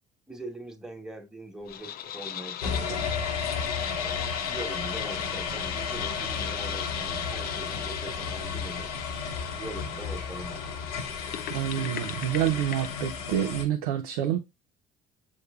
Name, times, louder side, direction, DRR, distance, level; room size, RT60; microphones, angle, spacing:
voice 1, 0.3-3.0 4.0-8.9 9.6-10.7, right 1 dB, 5° right, 1.3 m, -42 dB
sound 1, 1.7-13.2, left 10 dB, 55° left, 0.5 m, -38 dB
sound 2, 2.6-13.6, left 5 dB, 85° left, 0.9 m, -33 dB
voice 2, 11.5-14.4, right 11 dB, 85° right, 0.5 m, -27 dB
6.9 x 3.2 x 2.3 m
hypercardioid pair, 60°, 19 cm